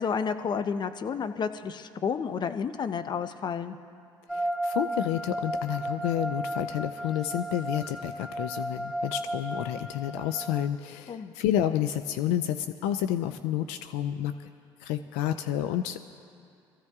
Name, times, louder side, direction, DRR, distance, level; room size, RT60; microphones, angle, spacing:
voice 1, 0.0-3.8 11.1-11.3, left 6 dB, 45° left, 10 dB, 0.7 m, -31 dB
voice 2, 4.3-14.5 14.8-16.1, left 11 dB, 85° left, 10 dB, 0.4 m, -30 dB
sound 1, 4.3-10.7, right 1 dB, ahead, 0.6 m, -34 dB
24.0 x 15.0 x 2.4 m, 2.4 s
supercardioid pair, 70°, 10 cm